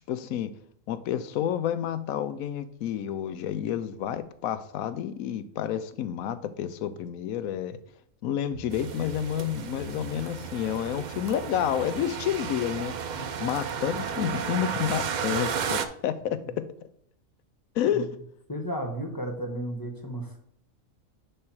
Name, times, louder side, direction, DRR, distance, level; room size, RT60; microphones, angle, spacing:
voice 1, 0.1-0.5 0.9-7.8 8.2-12.9 13.4-16.6 17.8-18.1, left 10 dB, 85° left, 13 dB, 1.0 m, -29 dB
sound 1, 8.5-15.1, right 6 dB, 60° right, 3.1 m, -45 dB
sound 2, 8.7-15.9, right 7 dB, 80° right, 0.4 m, -33 dB
voice 2, 18.5-20.4, right 1 dB, 15° left, 3 dB, 1.1 m, -33 dB
10.0 x 3.5 x 4.4 m, 0.69 s
omnidirectional pair, 1.4 m